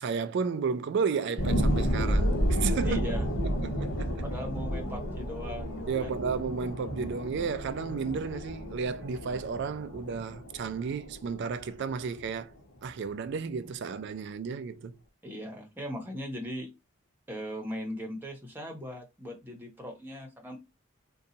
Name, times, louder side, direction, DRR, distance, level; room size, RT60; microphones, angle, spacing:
voice 1, 0.0-3.1 3.4-4.2 5.9-12.5 12.8-15.0, right 5 dB, 55° right, 0.3 m, -33 dB
sound 1, 1.4-12.4 12.9-13.0, equal, 70° left, 1.1 m, -31 dB
voice 2, 2.8-3.3 4.2-6.1 15.2-16.7 17.3-20.6, equal, 10° right, 0.8 m, -38 dB
2.7 x 2.3 x 3.8 m
head